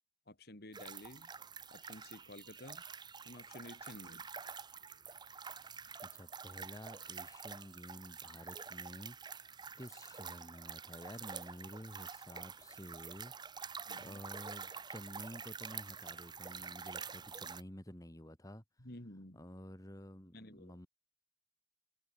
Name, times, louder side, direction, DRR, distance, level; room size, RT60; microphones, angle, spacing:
voice 1, 0.3-1.3 1.7-2.8 3.2-4.3 13.9-14.2 18.8-19.4 20.3-20.8, left 1 dB, 60° left, 4.2 m, -52 dB
sound 1, 0.7-17.6, right 6 dB, 25° right, 0.7 m, -48 dB
voice 2, 6.0-18.6 19.3-20.9, equal, 20° left, 3.3 m, -51 dB
open air
head